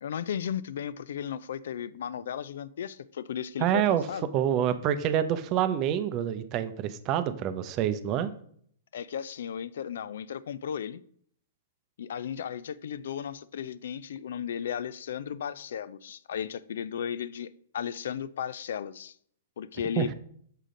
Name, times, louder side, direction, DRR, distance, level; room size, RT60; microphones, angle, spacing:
voice 1, 0.0-3.8 4.1-4.3 8.9-11.0 12.0-19.1 19.6-20.1, left 8 dB, 70° left, 0.3 m, -35 dB
voice 2, 3.6-4.0 4.3-8.3 20.0-20.1, right 10 dB, 35° right, 0.6 m, -27 dB
6.6 x 5.0 x 3.7 m
hypercardioid pair, 120°, 0 cm